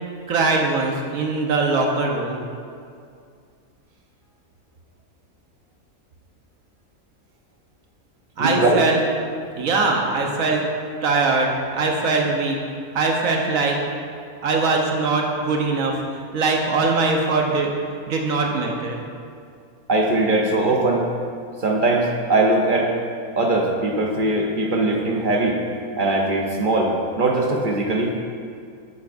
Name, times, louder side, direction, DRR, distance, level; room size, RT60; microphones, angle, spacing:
voice 1, 0.3-2.4 8.4-9.0 9.5-10.6 11.0-12.6 12.9-13.8 14.4-15.9 16.3-17.7 18.1-19.0, right 3 dB, 70° right, 1 dB, 1.4 m, -21 dB
voice 2, 8.4-8.8 19.9-21.0 21.6-22.9 23.4-25.6 26.0-28.2, right 2 dB, 45° right, 0 dB, 0.8 m, -20 dB
10.5 x 8.2 x 2.6 m, 2.3 s
omnidirectional pair, 1.5 m